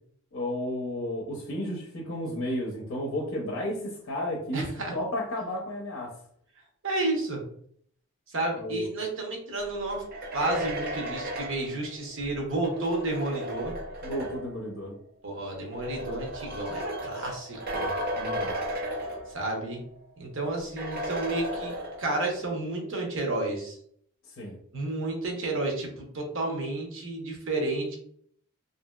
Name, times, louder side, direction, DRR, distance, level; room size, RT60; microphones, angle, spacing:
voice 1, 0.3-6.1 8.5-8.9 14.0-14.9 18.2-18.5 24.4-24.6, left 1 dB, 60° left, -1 dB, 0.6 m, -33 dB
voice 2, 4.5-4.9 6.8-7.4 8.3-10.0 10.3-13.7 15.2-17.9 19.3-19.8 20.2-23.8 24.7-28.0, right 2 dB, 60° right, 0 dB, 0.8 m, -31 dB
sound 1, 9.9-14.6 15.5-19.7 20.0-20.1 20.8-22.3, equal, 45° right, 0.4 m, -34 dB
2.8 x 2.6 x 2.2 m, 0.64 s
head